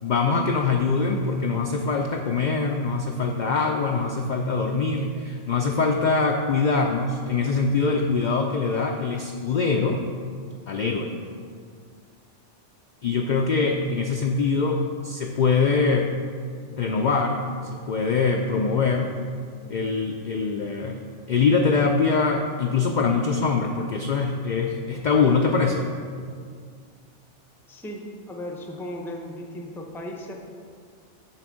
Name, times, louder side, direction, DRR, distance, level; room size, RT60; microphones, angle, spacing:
voice 1, 0.0-10.0 10.7-11.1 13.0-16.1 16.7-19.1 19.7-25.9, left 4 dB, 75° left, 2 dB, 0.4 m, -23 dB
voice 2, 27.7-30.4, left 1 dB, 5° left, 1 dB, 0.4 m, -36 dB
8.7 x 3.5 x 6.2 m, 2.1 s
omnidirectional pair, 1.3 m